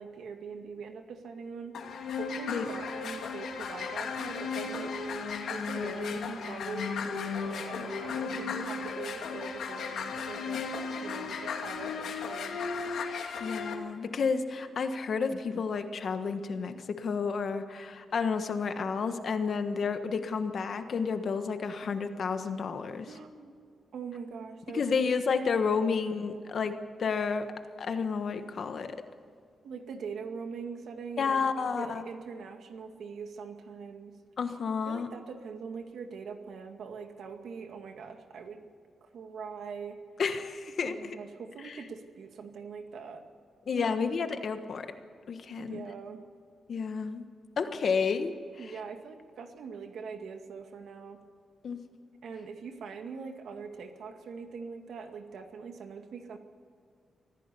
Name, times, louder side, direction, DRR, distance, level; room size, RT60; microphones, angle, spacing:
voice 1, 0.0-5.0 5.5-7.1 7.4-10.6 11.0-12.6 23.1-23.5 23.9-25.1 26.5-26.6 29.6-34.2 34.9-38.7 39.0-40.0 40.8-43.2 43.8-43.9 45.6-46.2 48.6-51.2 52.2-56.4, right 5 dB, 70° right, 5 dB, 2.1 m, -42 dB
sound 1, 1.7-13.7, left 5 dB, 80° left, 2.5 m, -35 dB
voice 2, 13.4-23.1 24.7-27.5 27.8-29.0 31.2-32.0 34.4-35.1 40.2-41.2 41.6-41.8 43.7-44.9 45.3-45.8 46.7-47.2 47.6-48.7 51.6-51.8, left 5 dB, 45° left, 8 dB, 1.4 m, -31 dB
24.5 x 16.0 x 7.0 m, 2.3 s
wide cardioid pair, 170°, 0 cm